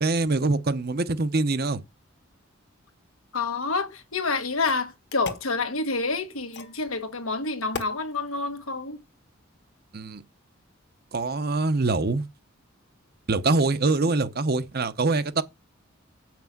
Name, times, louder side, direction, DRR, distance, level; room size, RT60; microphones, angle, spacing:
voice 1, 0.0-1.8 9.9-10.2 11.1-12.2 13.3-15.4, right 3 dB, 50° right, 0.8 m, -24 dB
voice 2, 3.3-9.0, left 3 dB, 85° left, 1.5 m, -28 dB
sound 1, 3.9-4.0 4.6-5.5 6.5-6.8 7.7-8.0, left 5 dB, 55° left, 1.4 m, -36 dB
8.1 x 6.0 x 7.2 m
head